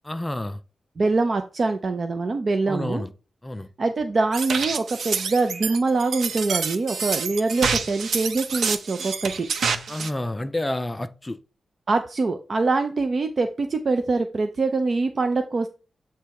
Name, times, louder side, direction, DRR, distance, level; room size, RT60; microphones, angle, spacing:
voice 1, 0.0-0.6 2.7-3.1 3.4-3.7 9.9-11.4, left 1 dB, 15° left, 0.4 m, -29 dB
voice 2, 1.0-3.0 3.8-9.5 11.9-15.7, right 3 dB, 40° right, 0.5 m, -24 dB
sound 1, 4.3-10.1, right 5 dB, 90° right, 0.7 m, -27 dB
8.0 x 3.3 x 4.7 m
wide cardioid pair, 155°, 0 cm